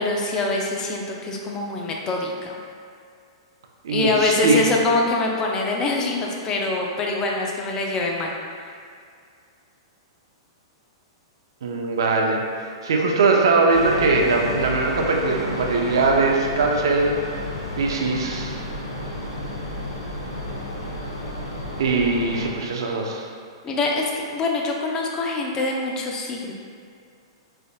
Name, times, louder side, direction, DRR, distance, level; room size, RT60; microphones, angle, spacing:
voice 1, 0.0-2.6 3.9-8.3 8.6-8.7 23.6-26.5, left 2 dB, 25° left, 0 dB, 0.5 m, -24 dB
voice 2, 3.8-4.6 11.6-12.4 12.8-17.1 17.8-18.6 21.8-23.3, right 3 dB, 70° right, 1 dB, 0.5 m, -21 dB
sound 1, 13.7-22.5, left 1 dB, 85° left, 0.9 m, -31 dB
3.6 x 3.4 x 2.3 m, 2.2 s
hypercardioid pair, 115°, 2 cm